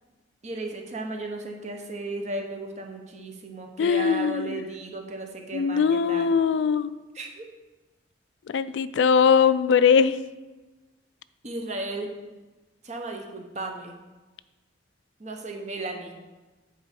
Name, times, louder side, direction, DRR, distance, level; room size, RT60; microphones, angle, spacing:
voice 1, 0.4-6.3 7.1-7.5 11.4-12.1 12.8-13.9 15.2-16.1, right 2 dB, 40° right, 3 dB, 1.0 m, -35 dB
voice 2, 3.8-4.6 5.5-6.9 8.5-10.2, left 6 dB, 80° left, 15 dB, 0.3 m, -21 dB
8.8 x 4.4 x 5.3 m, 1.2 s
head